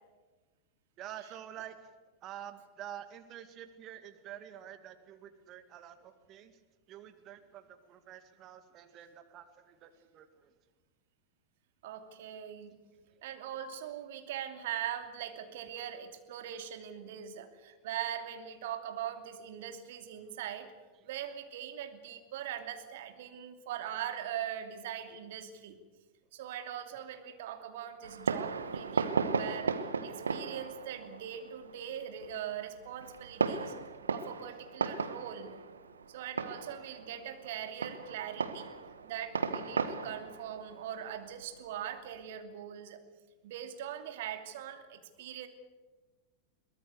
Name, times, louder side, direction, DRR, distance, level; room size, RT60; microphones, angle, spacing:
voice 1, 1.0-1.7 2.2-6.5 6.9-10.5, right 11 dB, 35° right, 10 dB, 2.1 m, -48 dB
voice 2, 11.8-12.7 13.2-20.7 21.0-25.8 26.3-29.7 30.0-33.7 34.1-35.6 36.1-38.7 39.1-43.0 43.4-45.5, right 10 dB, 55° right, 7 dB, 2.7 m, -41 dB
Fireworks, 28.0-42.2, right 5 dB, 70° right, 1.4 m, -36 dB
23.0 x 18.5 x 8.2 m, 1.3 s
figure-of-eight pair, 90°, 0 cm